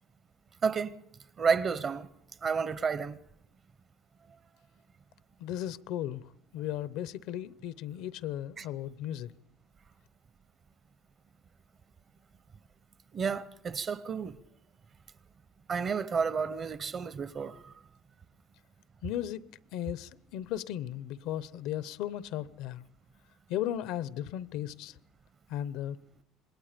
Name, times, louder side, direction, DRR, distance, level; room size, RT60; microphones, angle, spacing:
voice 1, 0.6-1.0 1.4-2.1 2.4-3.2 8.6-8.7 13.1-14.3 15.7-17.7, right 5 dB, 30° right, 0.7 m, -31 dB
voice 2, 5.4-6.2 6.5-9.3 19.0-19.4 19.7-22.8 23.5-24.9 25.5-26.0, left 11 dB, 75° left, 0.7 m, -36 dB
26.5 x 20.5 x 5.1 m
cardioid pair, 145°, 0 cm